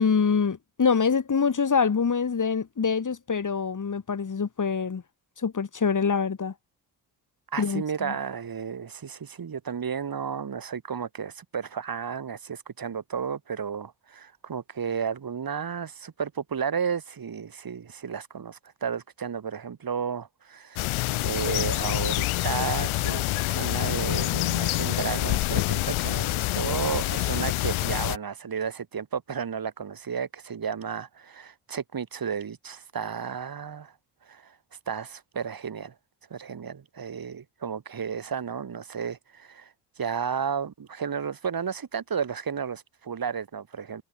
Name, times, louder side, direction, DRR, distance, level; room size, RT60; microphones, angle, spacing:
voice 1, 0.0-5.0 5.4-6.5 7.6-8.1, left 5 dB, 35° left, 4.2 m, -25 dB
voice 2, 7.5-20.9 21.2-33.9 34.3-34.5 34.9-35.9 36.3-44.0, right 7 dB, 45° right, 4.7 m, -33 dB
sound 1, 20.8-28.2, left 18 dB, 70° left, 5.8 m, -26 dB
hypercardioid pair, 45°, 49 cm